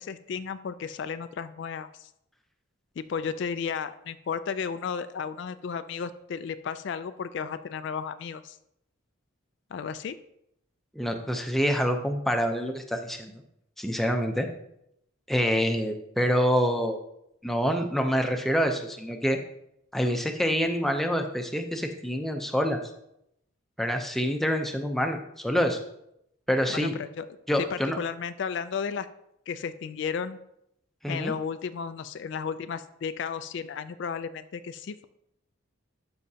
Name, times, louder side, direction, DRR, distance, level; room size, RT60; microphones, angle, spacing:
voice 1, 0.0-2.1 3.0-8.6 9.7-10.2 26.7-27.3 27.6-29.1 29.5-30.4 31.1-35.0, left 6 dB, 60° left, 11 dB, 0.3 m, -33 dB
voice 2, 10.9-13.4 13.8-14.5 15.3-17.0 17.4-19.4 19.9-22.8 23.8-25.8 26.5-26.9 27.5-28.0 31.0-31.3, equal, ahead, 4 dB, 0.6 m, -26 dB
12.0 x 5.6 x 2.8 m, 0.79 s
head